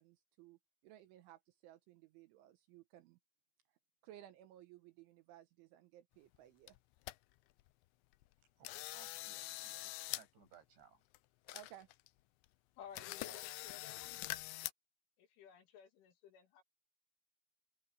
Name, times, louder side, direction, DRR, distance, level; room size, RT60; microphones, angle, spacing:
voice 1, 0.0-3.2 4.0-6.8 11.5-11.9, right 13 dB, 75° right, 3.3 m, -59 dB
sound 1, 6.3-6.4 6.7-7.2 7.6-7.7 8.1-8.3 8.6-10.2 10.5-10.6 11.1-11.2 11.5-12.1 12.4-12.5 12.9-14.7, left 19 dB, 85° left, 2.6 m, -44 dB
voice 2, 8.6-11.0 13.3-13.5, right 7 dB, 60° right, 8.7 m, -63 dB
voice 3, 12.8-14.1 15.2-16.6, left 8 dB, 70° left, 4.9 m, -56 dB
open air
omnidirectional pair, 5.9 m